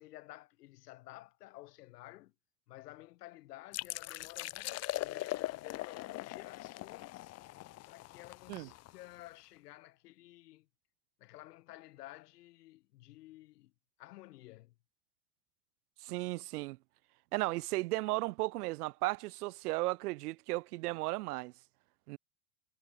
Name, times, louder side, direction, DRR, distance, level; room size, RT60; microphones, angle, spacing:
voice 1, 0.0-2.3 2.7-7.3 7.8-10.7 11.2-13.7 14.0-14.7, left 17 dB, 80° left, 6.1 m, -53 dB
sound 1, 3.7-9.3, left 17 dB, 35° left, 1.3 m, -41 dB
voice 2, 16.0-16.8 17.3-21.5 22.1-22.2, right 20 dB, 70° right, 2.1 m, -35 dB
supercardioid pair, 150°, 46 cm